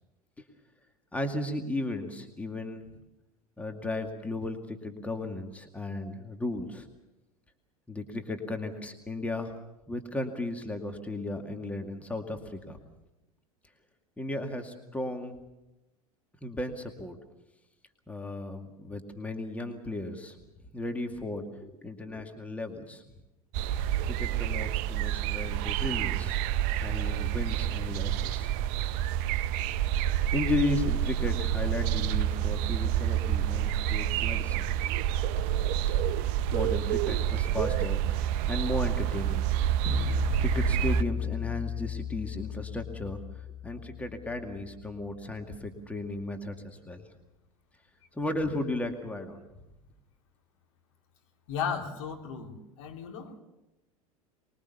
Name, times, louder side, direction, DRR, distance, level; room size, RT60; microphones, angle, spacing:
voice 1, 1.1-2.8 3.6-6.9 7.9-9.6 9.9-12.8 14.2-15.4 16.4-17.2 18.1-20.4 20.7-23.0 24.1-26.4 26.8-28.5 29.3-29.7 30.3-34.7 36.5-39.5 40.1-47.0 48.1-49.4, left 2 dB, 5° left, 5 dB, 2.2 m, -35 dB
sound 1, 23.5-41.0, right 11 dB, 45° right, 0.8 m, -28 dB
sound 2, 39.9-45.2, left 10 dB, 30° left, 0.7 m, -35 dB
voice 2, 51.5-53.4, left 7 dB, 55° left, 2 dB, 3.4 m, -35 dB
24.0 x 22.0 x 7.0 m, 0.96 s
figure-of-eight pair, 80°, 19 cm